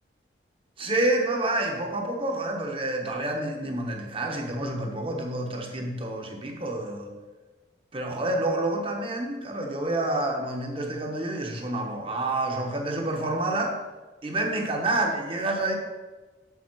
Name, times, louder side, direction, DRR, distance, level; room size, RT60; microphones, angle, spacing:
voice 1, 0.8-7.1 7.9-13.8 14.2-15.7, right 2 dB, 30° right, 2 dB, 1.1 m, -28 dB
7.2 x 6.6 x 4.6 m, 1.3 s
head